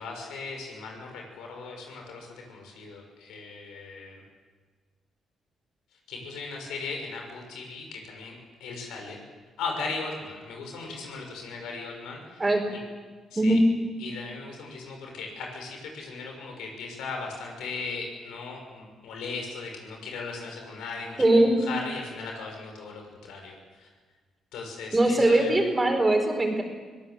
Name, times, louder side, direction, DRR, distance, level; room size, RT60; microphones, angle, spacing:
voice 1, 0.0-4.2 6.1-9.2 9.6-12.4 13.3-13.6 14.0-23.9 24.5-25.6, left 4 dB, 85° left, 2 dB, 6.3 m, -38 dB
voice 2, 21.2-21.5 24.9-26.6, right 1 dB, 20° right, 3 dB, 4.9 m, -21 dB
24.5 x 17.5 x 7.8 m, 1.4 s
cardioid pair, 90°, 0 cm